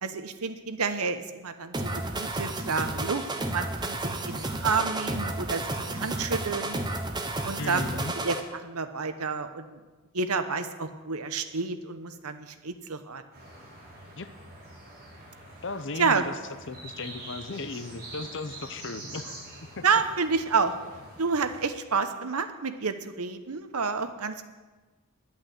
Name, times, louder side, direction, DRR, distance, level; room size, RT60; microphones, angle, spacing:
voice 1, 0.0-3.2 3.5-5.6 5.9-6.8 7.4-7.8 8.1-8.4 8.6-9.8 10.1-13.2 16.0-16.2 19.8-20.7 21.2-24.5, right 5 dB, 90° right, 9 dB, 1.0 m, -29 dB
sound 1, 1.7-8.4, right 2 dB, 20° right, 0.9 m, -32 dB
voice 2, 7.6-8.1 14.2-14.3 15.6-16.3 16.7-19.4 19.8-19.9, left 3 dB, 55° left, 11 dB, 0.7 m, -36 dB
sound 2, 13.3-21.6, right 1 dB, 45° right, 5.1 m, -45 dB
11.0 x 8.7 x 7.8 m, 1.3 s
head